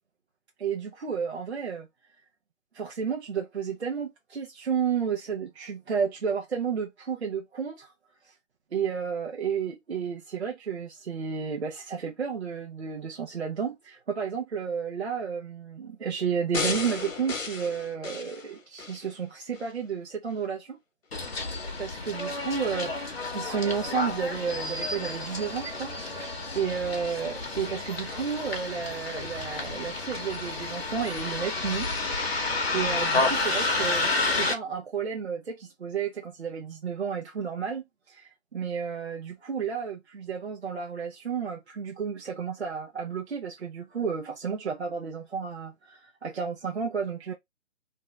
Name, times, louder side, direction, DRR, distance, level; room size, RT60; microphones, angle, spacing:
voice 1, 0.6-1.9 2.7-7.9 8.7-20.8 21.8-26.3 26.5-31.9 32.2-47.3, right 6 dB, 55° right, 0.7 m, -32 dB
sound 1, 16.5-19.0 19.5-19.6, left 4 dB, 80° left, 1.1 m, -33 dB
Bus, 21.1-34.5, left 3 dB, 50° left, 0.9 m, -30 dB
2.7 x 2.3 x 3.0 m
hypercardioid pair, 180°, 39 cm